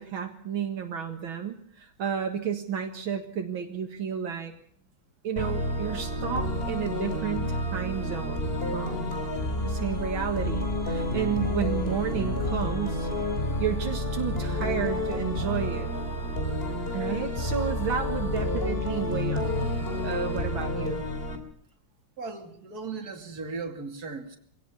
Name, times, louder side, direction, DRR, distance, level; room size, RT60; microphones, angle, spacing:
voice 1, 0.0-4.5 5.2-9.2 9.6-13.1 13.6-15.9 16.9-21.0, right 8 dB, 80° right, 4 dB, 2.6 m, -32 dB
sound 1, 5.4-21.4, left 1 dB, 30° left, 3.2 m, -29 dB
voice 2, 22.2-24.4, right 4 dB, 50° right, 4 dB, 3.1 m, -37 dB
23.5 x 17.5 x 7.2 m, 0.64 s
omnidirectional pair, 2.2 m